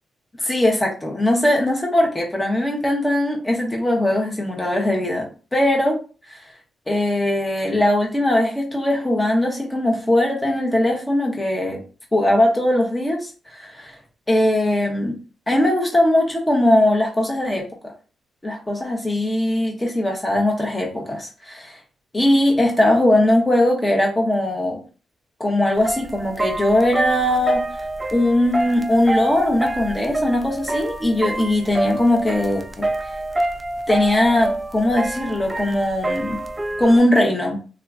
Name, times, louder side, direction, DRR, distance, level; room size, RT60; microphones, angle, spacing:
voice 1, 0.4-6.0 6.3-6.4 6.9-11.8 12.1-14.0 14.3-15.2 15.5-17.6 18.4-21.8 22.1-24.8 25.4-27.6 28.1-32.9 33.9-36.4 36.8-37.6, left 1 dB, 15° left, 0 dB, 0.9 m, -20 dB
sound 1, 25.7-37.0, right 2 dB, 15° right, 0.3 m, -27 dB
3.4 x 2.7 x 2.4 m, 0.35 s
wide cardioid pair, 145°, 0 cm